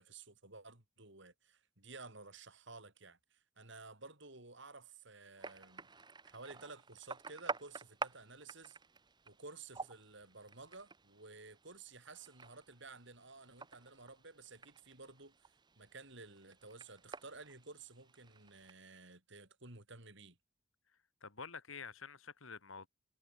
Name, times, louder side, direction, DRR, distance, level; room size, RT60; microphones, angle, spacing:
voice 1, 0.0-5.9 6.2-8.8 9.3-15.5 15.8-20.4, right 3 dB, 60° right, 5.5 m, -54 dB
sound 1, 5.4-18.7, right 4 dB, 20° right, 0.9 m, -50 dB
voice 2, 21.2-22.9, left 5 dB, 75° left, 2.8 m, -48 dB
head